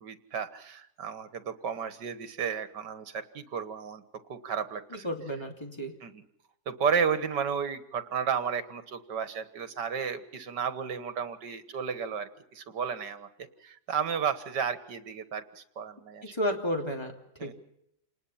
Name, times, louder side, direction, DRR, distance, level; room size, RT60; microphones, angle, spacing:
voice 1, 0.0-5.1 6.0-6.2 6.7-13.3 13.6-16.3 17.4-17.5, right 6 dB, 75° right, 12 dB, 2.1 m, -33 dB
voice 2, 4.9-5.9 16.2-17.1 17.4-17.5, equal, 15° left, 3 dB, 3.1 m, -32 dB
28.0 x 20.0 x 5.8 m, 0.77 s
omnidirectional pair, 1.9 m